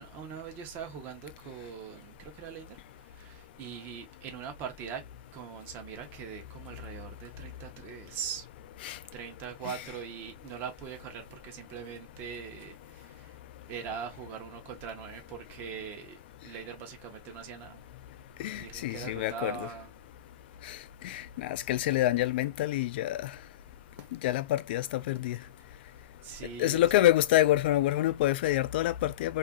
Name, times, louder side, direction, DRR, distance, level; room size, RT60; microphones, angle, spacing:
voice 1, 0.0-5.0 5.3-8.5 9.1-13.4 13.7-17.8 18.5-19.9 24.0-24.1 26.2-27.1, right 7 dB, 35° right, 0.7 m, -42 dB
voice 2, 18.4-19.7 20.6-20.8 21.0-23.3 24.1-25.4 26.6-29.4, left 14 dB, 75° left, 0.3 m, -27 dB
2.7 x 2.4 x 2.3 m
supercardioid pair, 160°, 6 cm